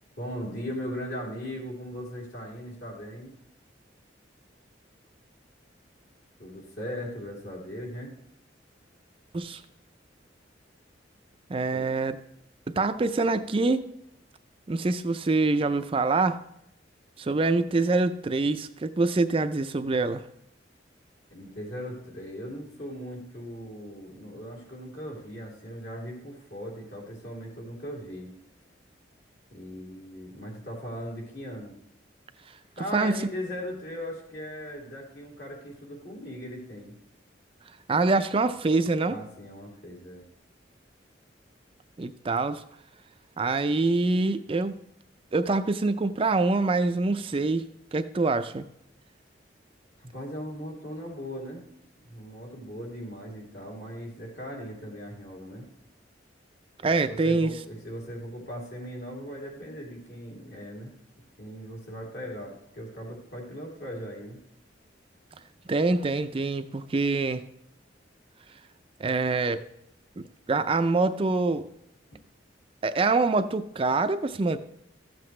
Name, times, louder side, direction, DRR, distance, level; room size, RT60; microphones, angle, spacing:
voice 1, 0.2-3.3 6.4-8.1 11.7-11.9 21.3-28.3 29.5-31.7 32.8-36.9 39.1-40.2 50.0-51.6 52.0-55.7 57.1-60.9 61.4-64.4 72.1-72.2, equal, 65° left, -2 dB, 3.1 m, -38 dB
voice 2, 11.5-12.2 12.7-13.8 14.7-16.4 17.2-20.2 32.9-33.2 37.9-39.2 42.0-42.6 43.4-44.8 45.3-48.6 56.8-57.5 65.7-67.4 69.0-69.6 70.2-70.3 70.5-71.7 72.8-74.6, right 3 dB, 30° right, 10 dB, 0.4 m, -25 dB
13.5 x 7.7 x 3.2 m, 0.76 s
head